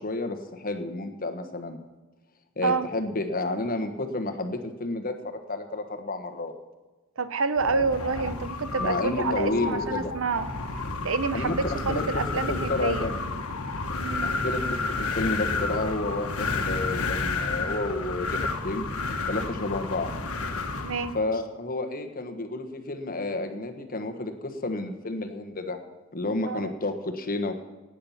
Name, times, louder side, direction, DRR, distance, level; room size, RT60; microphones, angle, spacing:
voice 1, 0.0-1.8 2.6-6.5 8.8-10.1 11.3-12.0 12.5-13.2 14.2-18.8 19.3-20.1 21.1-25.8 26.1-27.6, left 2 dB, 40° left, 6 dB, 1.4 m, -31 dB
voice 2, 7.2-10.5 11.0-13.1 14.0-14.3 20.8-21.2 26.5-26.7, right 4 dB, 65° right, 12 dB, 0.8 m, -28 dB
Wind, 7.6-21.2, left 3 dB, 90° left, 1.4 m, -31 dB
18.0 x 8.7 x 5.8 m, 1.2 s
head